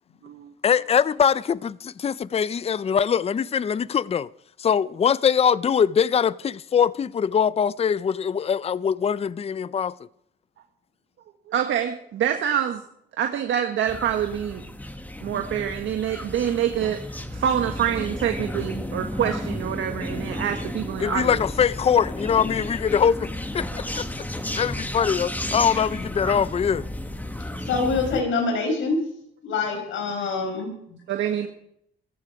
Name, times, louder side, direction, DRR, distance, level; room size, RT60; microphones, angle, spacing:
voice 1, 0.6-4.3 4.6-10.0 21.0-23.3 23.5-24.3 24.5-26.9, left 7 dB, 30° left, 0.5 m, -22 dB
voice 2, 11.5-12.8 13.2-14.6 15.2-17.0 17.3-21.4 31.1-31.5, right 9 dB, 75° right, 1.5 m, -26 dB
sound 1, 13.9-28.2, left 1 dB, 10° left, 1.6 m, -33 dB
voice 3, 27.6-29.0 29.4-31.0, left 4 dB, 80° left, 5.0 m, -25 dB
18.0 x 14.5 x 4.8 m
cardioid pair, 90°, 20 cm